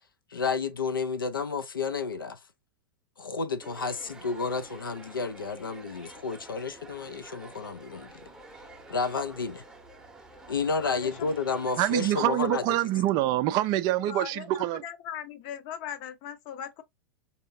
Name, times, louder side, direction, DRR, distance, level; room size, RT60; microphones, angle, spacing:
voice 1, 0.3-2.4 3.2-8.3 8.9-9.6 10.5-12.6, left 4 dB, 80° left, 0.5 m, -31 dB
sound 1, 3.6-12.1, right 2 dB, 5° right, 0.8 m, -49 dB
voice 2, 10.8-11.1 14.1-14.5 14.8-16.8, left 9 dB, 45° left, 0.7 m, -38 dB
voice 3, 11.8-14.8, right 14 dB, 35° right, 0.3 m, -26 dB
3.5 x 2.7 x 2.6 m
figure-of-eight pair, 95°, 11 cm